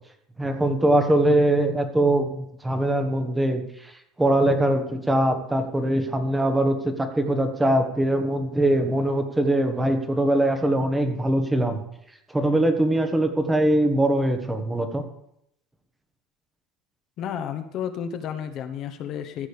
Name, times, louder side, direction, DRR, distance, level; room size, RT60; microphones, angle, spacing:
voice 1, 0.4-3.9 4.2-11.8 12.3-15.0, right 1 dB, 10° right, 7 dB, 1.3 m, -22 dB
voice 2, 17.2-19.5, left 8 dB, 50° left, 7 dB, 1.1 m, -32 dB
14.5 x 5.2 x 6.9 m, 0.77 s
cardioid pair, 125°, 0 cm